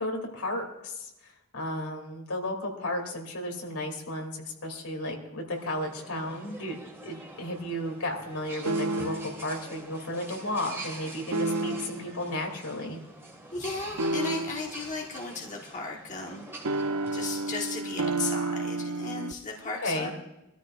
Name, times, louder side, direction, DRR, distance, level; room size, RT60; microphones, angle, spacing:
voice 1, 0.0-6.8 7.0-13.0 19.8-20.1, left 1 dB, 80° left, 2 dB, 2.9 m, -34 dB
sound 1, 5.5-17.6, right 2 dB, 10° right, 2.0 m, -45 dB
sound 2, 8.7-9.4 11.3-12.1 14.0-14.8 16.7-19.3, right 2 dB, 80° right, 0.7 m, -30 dB
voice 2, 13.5-16.5 17.1-20.1, left 3 dB, 35° left, -1 dB, 1.4 m, -35 dB
23.5 x 13.5 x 2.5 m, 0.94 s
head